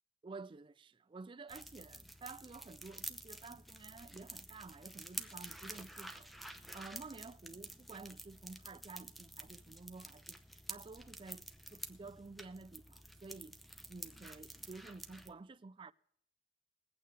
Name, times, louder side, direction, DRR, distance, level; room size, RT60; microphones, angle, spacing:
voice 1, 0.2-6.3 6.7-10.4 10.7-13.6 13.9-15.9, right 3 dB, 30° right, 0.4 m, -51 dB
sound 1, 1.5-15.3, right 1 dB, ahead, 0.7 m, -50 dB
21.0 x 8.8 x 3.3 m
head